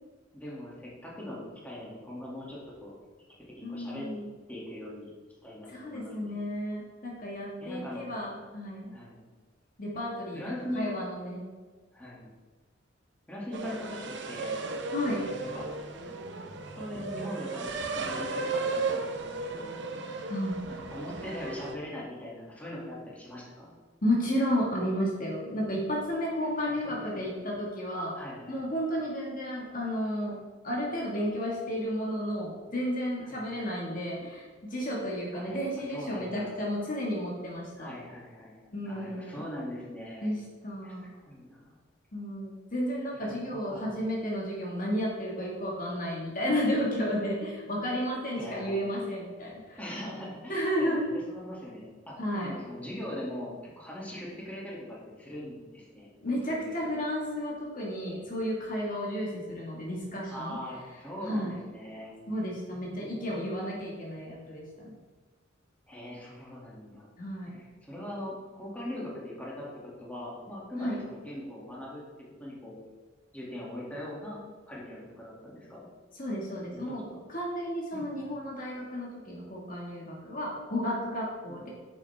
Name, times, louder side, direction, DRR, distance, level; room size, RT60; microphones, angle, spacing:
voice 1, 0.3-3.0 3.5-4.1 4.5-5.1 5.4-6.3 7.6-8.0 8.9-9.3 10.3-10.9 11.9-12.3 13.3-14.6 15.2-15.7 16.7-19.8 20.7-23.7 26.4-27.8 28.2-28.7 33.2-33.5 35.3-35.6 35.9-36.5 37.8-40.3 40.8-40.9 41.2-41.8 43.1-44.0 48.3-48.8 49.8-51.0 51.3-52.1 52.4-56.1 56.5-56.9 60.3-62.4 62.7-63.5 65.9-67.1 67.6-72.0 72.4-72.8 73.3-74.4 74.7-75.9 76.7-77.2 77.9-78.2 81.5-81.6, left 1 dB, 10° left, -5 dB, 2.4 m, -41 dB
voice 2, 3.6-4.3 5.7-8.9 9.8-10.4 10.7-11.5 14.9-15.2 20.3-20.6 24.0-28.1 28.5-30.4 30.6-37.9 38.7-39.4 40.2-41.1 42.1-49.8 50.5-51.1 52.2-52.5 56.2-60.6 61.2-61.6 62.3-64.9 67.2-67.6 70.8-71.0 76.2-81.7, equal, 45° left, -3 dB, 1.9 m, -32 dB
sound 1, 13.5-21.7, right 3 dB, 65° right, 0.9 m, -35 dB
9.8 x 7.1 x 3.5 m, 1.4 s
head